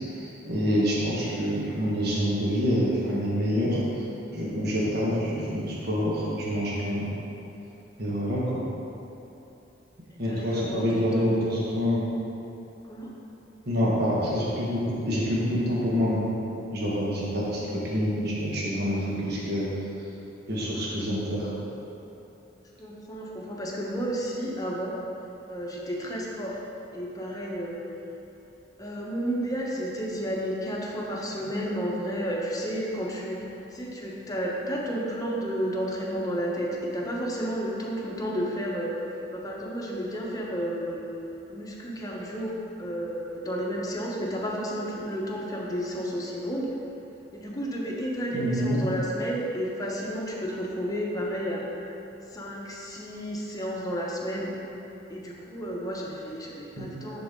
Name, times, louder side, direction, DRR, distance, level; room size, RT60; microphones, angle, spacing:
voice 1, 0.1-3.8 4.3-7.1 8.0-8.6 10.2-12.1 13.7-16.3 16.7-19.7 20.5-21.5 48.3-48.8 56.8-56.9, equal, 55° right, -6 dB, 1.3 m, -27 dB
voice 2, 10.2-11.5 12.9-13.1 22.8-25.0 25.5-26.6 26.9-27.8 28.8-38.9 39.3-41.0 41.5-42.5 42.8-46.7 47.3-51.6 52.3-54.5 55.1-57.2, equal, 20° left, -3 dB, 0.9 m, -32 dB
10.0 x 4.2 x 3.7 m, 3.0 s
head